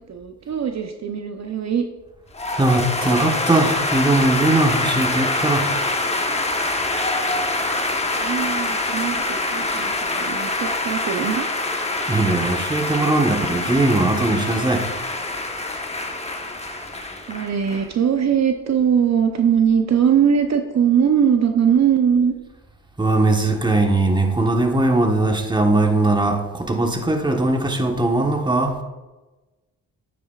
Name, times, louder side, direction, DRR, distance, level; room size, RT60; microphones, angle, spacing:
voice 1, 0.1-1.9 8.2-11.5 17.3-22.3, right 8 dB, 50° right, 5 dB, 0.7 m, -20 dB
sound 1, 2.3-17.9, left 2 dB, 20° left, 1.1 m, -25 dB
voice 2, 2.6-5.8 12.1-14.9 23.0-28.8, right 2 dB, 15° right, 3 dB, 1.2 m, -20 dB
9.2 x 8.6 x 2.4 m, 1.1 s
cardioid pair, 75°, 35 cm